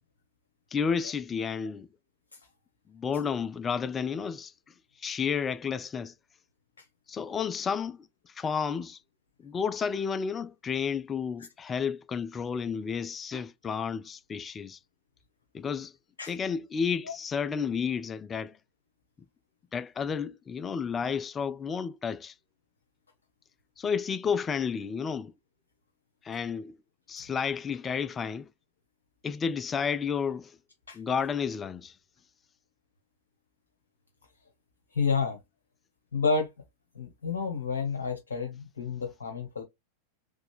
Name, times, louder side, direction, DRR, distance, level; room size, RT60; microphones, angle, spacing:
voice 1, 0.7-1.9 2.9-4.5 5.0-6.1 7.1-9.0 9.4-14.8 15.5-15.9 16.3-18.6 19.7-22.3 23.8-25.3 26.2-26.8 27.1-28.5 29.2-30.6 30.9-31.9, left 6 dB, 20° left, 0.4 m, -31 dB
voice 2, 34.9-35.4 36.1-36.5 36.9-39.6, left 5 dB, 65° left, 1.1 m, -30 dB
3.9 x 3.3 x 3.3 m
figure-of-eight pair, 90°, 0 cm